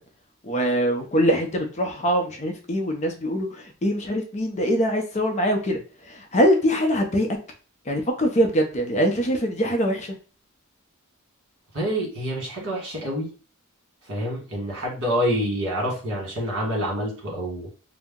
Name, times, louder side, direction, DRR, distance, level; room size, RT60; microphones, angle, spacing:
voice 1, 0.4-5.8 6.3-7.3 7.9-10.1, equal, 35° left, 3 dB, 0.5 m, -23 dB
voice 2, 11.7-13.3 14.1-17.7, equal, 60° right, -2 dB, 1.4 m, -27 dB
2.7 x 2.1 x 3.6 m, 0.36 s
head